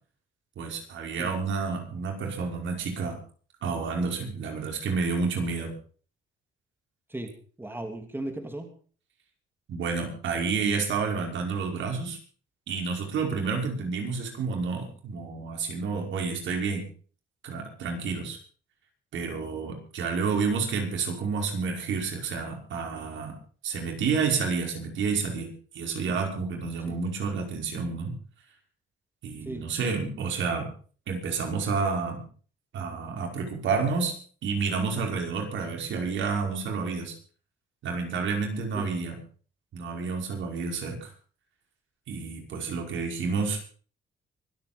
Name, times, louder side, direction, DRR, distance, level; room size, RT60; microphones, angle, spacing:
voice 1, 0.6-3.2 3.6-5.7 9.7-12.2 12.7-16.8 17.4-18.4 19.1-23.3 23.6-25.5 25.7-28.2 29.2-30.7 31.1-32.2 32.7-34.1 34.4-37.1 37.8-39.2 39.7-41.1 42.1-43.6, right 5 dB, 75° right, 2 dB, 5.4 m, -29 dB
voice 2, 7.6-8.7 26.1-26.2 26.9-27.0 29.4-29.6 38.7-38.9, right 1 dB, 10° right, 5 dB, 3.1 m, -36 dB
24.5 x 8.8 x 5.3 m, 0.42 s
cardioid pair, 90°, 20 cm